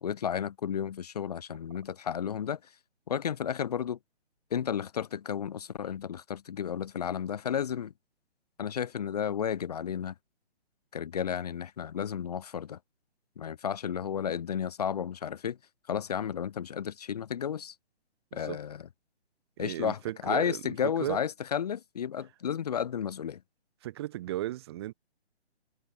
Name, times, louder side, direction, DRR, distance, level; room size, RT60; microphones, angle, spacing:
voice 1, 0.0-2.6 3.1-4.0 4.5-7.9 8.6-10.1 10.9-12.8 13.4-15.6 15.9-17.7 18.3-18.9 19.6-23.4, left 8 dB, 35° left, 1.5 m, -32 dB
voice 2, 19.6-20.7 21.0-21.2 23.8-24.9, right 14 dB, 25° right, 2.5 m, -35 dB
hypercardioid pair, 170°, 33 cm